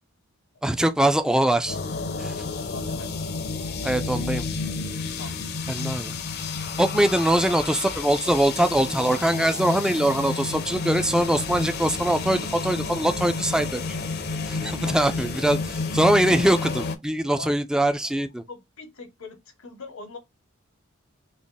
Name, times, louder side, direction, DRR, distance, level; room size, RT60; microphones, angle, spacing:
voice 1, 0.6-1.8 3.8-4.4 5.7-6.1 6.8-13.8 14.5-18.4, right 1 dB, 5° right, 0.3 m, -22 dB
sound 1, 1.6-17.0, left 4 dB, 50° left, 0.5 m, -31 dB
voice 2, 2.1-3.1 5.2-5.4 14.8-15.1 17.4-17.5 18.2-20.2, left 3 dB, 85° left, 1.0 m, -42 dB
3.6 x 2.1 x 3.8 m
head